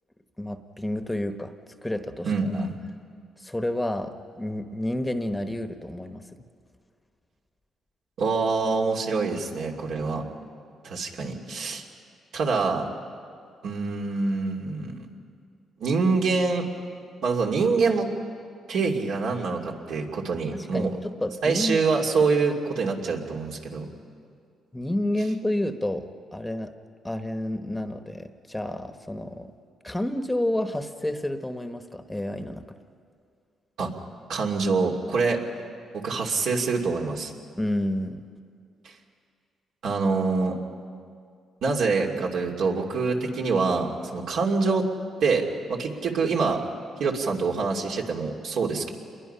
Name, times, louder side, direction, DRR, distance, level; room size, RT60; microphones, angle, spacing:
voice 1, 0.4-1.5 1.8-2.6 3.4-6.3 20.5-21.8 24.7-26.7 27.0-29.5 29.8-32.8 37.6-38.3, left 1 dB, 10° left, 8 dB, 1.1 m, -30 dB
voice 2, 2.2-2.7 8.2-10.2 10.8-11.8 12.3-12.9 13.6-15.1 15.8-16.7 17.2-18.1 18.7-20.9 21.4-23.8 33.8-33.9 34.3-35.4 35.9-37.3 39.8-40.6 41.6-44.8 45.2-46.6 47.0-48.9, right 4 dB, 75° right, 0 dB, 2.7 m, -25 dB
28.0 x 22.0 x 5.7 m, 2.2 s
cardioid pair, 90°, 0 cm